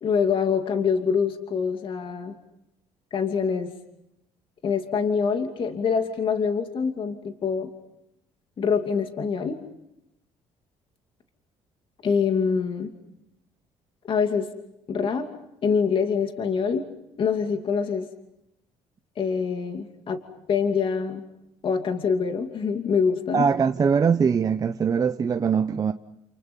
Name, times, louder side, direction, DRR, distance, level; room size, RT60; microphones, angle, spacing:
voice 1, 0.0-2.3 3.1-3.7 4.6-7.7 8.6-9.6 12.0-12.9 14.0-14.5 14.9-15.3 15.6-16.8 17.2-18.1 19.2-20.2 20.5-21.2 21.6-23.4, left 6 dB, 45° left, 2.7 m, -25 dB
voice 2, 23.3-25.9, right 6 dB, 30° right, 0.9 m, -22 dB
30.0 x 29.0 x 5.5 m
cardioid pair, 110°, 12 cm